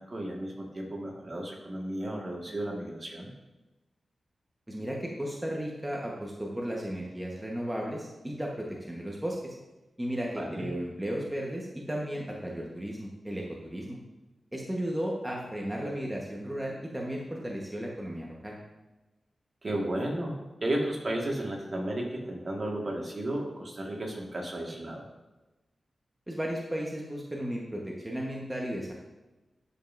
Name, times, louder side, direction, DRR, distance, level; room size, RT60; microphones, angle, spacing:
voice 1, 0.0-3.3 10.4-10.7 19.6-25.1, right 1 dB, 40° right, -1 dB, 1.8 m, -33 dB
voice 2, 4.7-9.5 10.0-14.0 14.5-18.6 26.3-28.9, equal, 10° right, -2 dB, 1.2 m, -34 dB
12.5 x 5.4 x 2.6 m, 1.1 s
cardioid pair, 70°, 0 cm